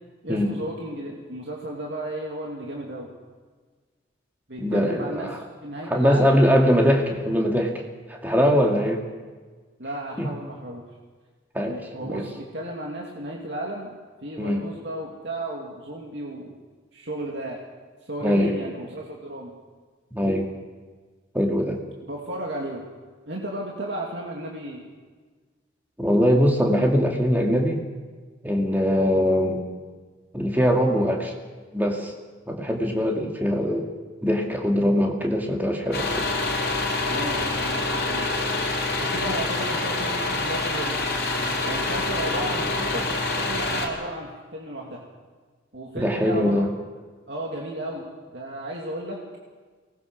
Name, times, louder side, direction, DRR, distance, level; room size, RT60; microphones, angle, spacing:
voice 1, 0.2-3.1 4.5-5.3 5.6-6.4 9.8-10.9 11.6-13.9 14.2-16.6 16.9-17.6 18.1-19.5 22.1-22.8 23.3-24.8 37.1-38.4 39.0-41.0 41.6-45.0 45.7-46.7 47.3-49.2, right 1 dB, 65° right, -2 dB, 2.7 m, -34 dB
voice 2, 4.6-5.4 5.9-7.7 8.1-9.0 10.2-10.3 11.5-11.8 12.0-12.2 14.4-14.6 18.2-18.6 20.1-20.5 21.3-21.8 26.0-27.8 28.4-29.6 30.3-31.3 31.7-32.1 32.5-33.9 34.2-36.3 46.0-46.7, equal, 10° right, 0 dB, 2.3 m, -22 dB
sound 1, 35.9-43.9, left 2 dB, 55° left, 3.7 m, -26 dB
23.5 x 20.0 x 6.3 m, 1.4 s
head